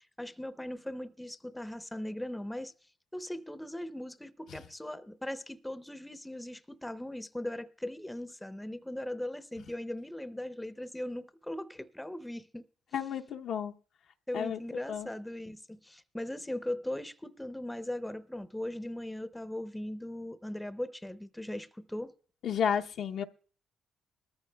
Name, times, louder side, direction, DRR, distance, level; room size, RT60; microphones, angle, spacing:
voice 1, 0.0-2.7 3.1-12.6 14.3-22.1, left 1 dB, 5° left, 0.6 m, -39 dB
voice 2, 12.9-13.7 14.3-14.6 14.9-15.1 22.4-23.2, left 8 dB, 70° left, 0.7 m, -32 dB
21.0 x 14.0 x 2.2 m
cardioid pair, 90°, 0 cm